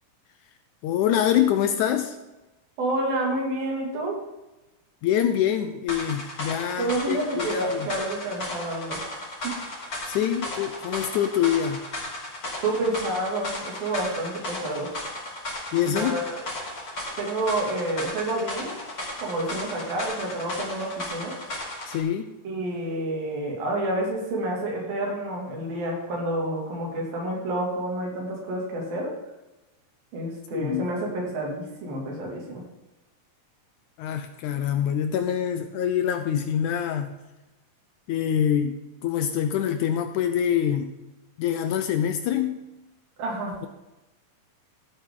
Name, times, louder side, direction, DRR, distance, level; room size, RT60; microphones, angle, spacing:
voice 1, 0.8-2.2 5.0-7.9 10.1-11.8 15.7-16.2 21.9-22.3 30.5-30.9 34.0-37.2 38.1-38.7 39.0-40.9 41.4-42.6, left 9 dB, 75° left, 8 dB, 1.9 m, -25 dB
voice 2, 2.8-4.2 6.8-9.0 9.4-9.5 12.6-14.9 15.9-16.4 17.2-18.8 19.2-21.3 22.4-29.1 30.1-32.6 43.2-43.6, right 1 dB, 85° right, -1 dB, 4.4 m, -29 dB
sound 1, 5.9-22.0, left 1 dB, 30° left, 3.5 m, -35 dB
15.5 x 8.3 x 3.9 m, 1.0 s
omnidirectional pair, 4.0 m